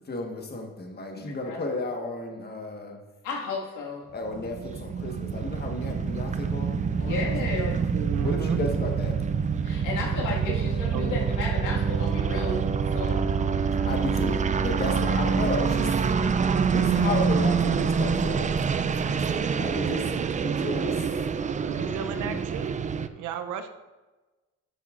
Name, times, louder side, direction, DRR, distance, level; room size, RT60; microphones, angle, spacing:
voice 1, 0.0-3.0 4.1-7.7 8.2-9.2 13.7-16.0 16.7-18.5 18.7-20.1 20.4-21.1, left 2 dB, 35° left, 2 dB, 1.4 m, -33 dB
voice 2, 1.1-1.6 3.2-4.0 7.0-7.8 9.6-12.6 12.8-13.3 21.8-22.4, left 3 dB, 85° left, -2 dB, 2.0 m, -33 dB
sound 1, 4.3-23.1, right 6 dB, 25° right, 0.4 m, -26 dB
voice 3, 7.9-8.6 10.9-11.2 21.7-22.9 23.2-23.7, right 8 dB, 85° right, 9 dB, 0.7 m, -34 dB
11.5 x 7.0 x 2.5 m, 1.2 s
cardioid pair, 90°, 30 cm